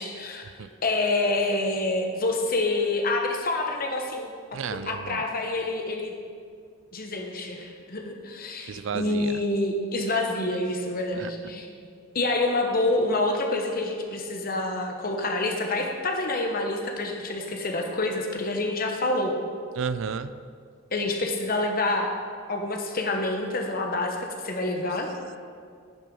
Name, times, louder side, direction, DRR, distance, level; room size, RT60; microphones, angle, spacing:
voice 1, 0.0-0.4 0.8-4.3 4.7-6.1 6.9-11.7 12.1-19.3 20.9-22.1 22.5-25.1, left 2 dB, 45° left, 2 dB, 1.1 m, -27 dB
voice 2, 4.5-5.2 8.7-9.4 11.1-11.3 19.8-20.3, right 6 dB, 65° right, 13 dB, 0.4 m, -32 dB
10.0 x 6.2 x 5.4 m, 2.1 s
head